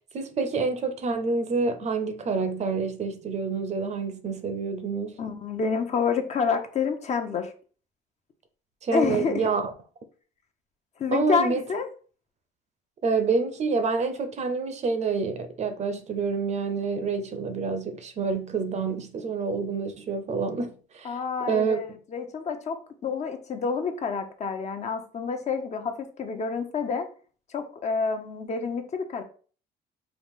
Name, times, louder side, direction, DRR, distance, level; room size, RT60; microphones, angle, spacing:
voice 1, 0.1-5.2 8.8-9.7 11.1-11.6 13.0-21.2 21.5-21.8, right 4 dB, 40° right, 0.6 m, -27 dB
voice 2, 5.2-7.5 8.9-9.5 11.0-11.9 21.0-22.8 23.0-27.1 27.5-29.2, left 5 dB, 40° left, 0.7 m, -28 dB
4.8 x 2.4 x 3.6 m
cardioid pair, 110°, 17 cm